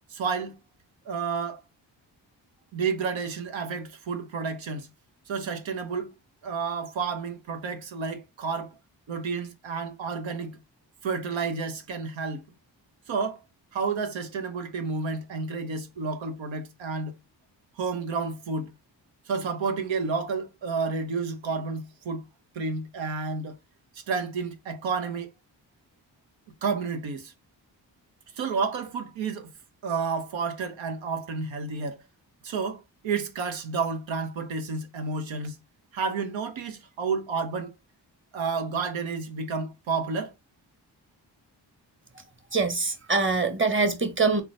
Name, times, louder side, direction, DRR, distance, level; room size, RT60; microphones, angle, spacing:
voice 1, 0.1-0.6 1.1-1.6 2.7-4.9 5.3-6.1 6.4-8.7 9.1-10.6 11.0-12.4 13.1-13.4 13.7-17.1 17.8-18.7 19.3-22.2 22.5-23.5 23.9-25.3 26.6-27.3 28.3-29.5 29.8-32.0 32.4-35.6 35.9-37.7 38.3-40.3, right 5 dB, 85° right, 0.8 m, -30 dB
voice 2, 42.5-44.4, right 4 dB, 25° right, 1.1 m, -24 dB
3.8 x 2.2 x 4.0 m
supercardioid pair, 45°, 44 cm